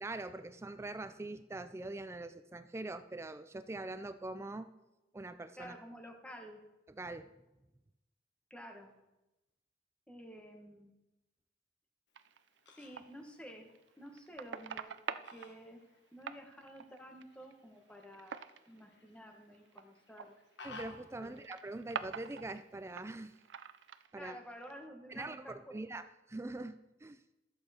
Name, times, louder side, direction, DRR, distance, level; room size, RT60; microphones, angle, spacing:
voice 1, 0.0-4.7 5.1-5.8 7.0-7.3 20.6-23.3 24.1-24.4 25.1-27.2, right 2 dB, 15° right, 11 dB, 0.3 m, -43 dB
voice 2, 5.6-6.6 8.5-8.9 10.1-10.9 12.7-13.7 14.0-15.8 16.1-18.4 18.7-20.3 21.2-21.4 24.1-25.9, equal, 5° left, 3 dB, 1.3 m, -51 dB
Fowl, 12.1-24.1, left 3 dB, 75° left, 1.4 m, -59 dB
sound 1, 12.2-13.1 13.7-15.5 16.2-17.5 17.9-18.8 19.5-19.8 20.1-20.3 21.2-22.6 22.9-24.1 24.5-24.7, right 7 dB, 80° right, 0.4 m, -44 dB
13.0 x 7.6 x 4.3 m, 0.99 s
head